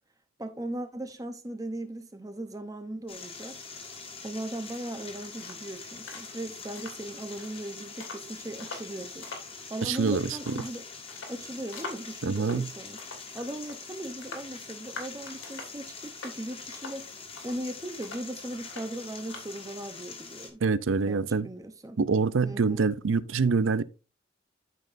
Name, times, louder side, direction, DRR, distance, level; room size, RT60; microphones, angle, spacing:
voice 1, 0.4-3.6 4.2-9.3 9.7-10.8 11.3-13.0 13.3-20.6 21.1-22.0 22.4-22.9, right 1 dB, 15° right, 0.7 m, -38 dB
sound 1, 3.1-20.5, left 4 dB, 30° left, 1.6 m, -44 dB
sound 2, 4.8-19.7, left 3 dB, 85° left, 2.7 m, -47 dB
voice 2, 9.8-10.5 12.2-12.7 20.6-21.5 22.0-23.8, right 4 dB, 80° right, 0.5 m, -25 dB
13.0 x 5.3 x 2.6 m
head